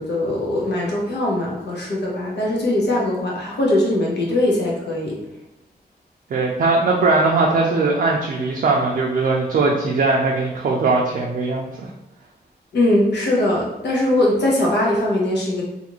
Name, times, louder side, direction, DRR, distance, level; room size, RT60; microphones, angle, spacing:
voice 1, 0.0-5.2 12.7-15.6, left 1 dB, 85° left, -3 dB, 0.8 m, -21 dB
voice 2, 6.3-11.9, right 3 dB, 55° right, -2 dB, 0.4 m, -20 dB
2.5 x 2.4 x 2.9 m, 0.93 s
wide cardioid pair, 110°, 17 cm